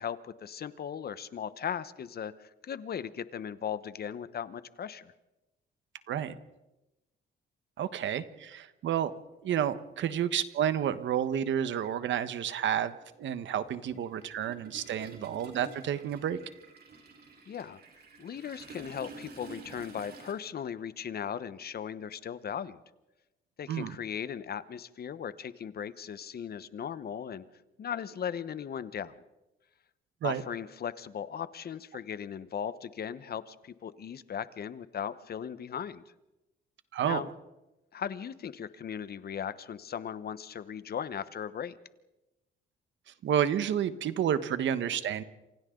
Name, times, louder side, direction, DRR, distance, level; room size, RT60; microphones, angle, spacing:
voice 1, 0.0-5.1 17.5-17.8 18.2-22.8 23.6-27.4 27.8-29.1 30.2-36.0 37.0-37.3 37.9-41.8, left 8 dB, 50° left, 14 dB, 1.1 m, -38 dB
voice 2, 6.1-6.4 7.8-9.1 9.4-16.4 23.7-23.9 30.2-30.4 36.9-37.2 43.2-45.2, right 9 dB, 70° right, 12 dB, 1.3 m, -30 dB
Toilet flush, 9.8-9.9 11.2-11.4 11.7-20.3, right 4 dB, 55° right, 4.6 m, -51 dB
28.5 x 26.5 x 3.9 m, 1.0 s
cardioid pair, 90°, 20 cm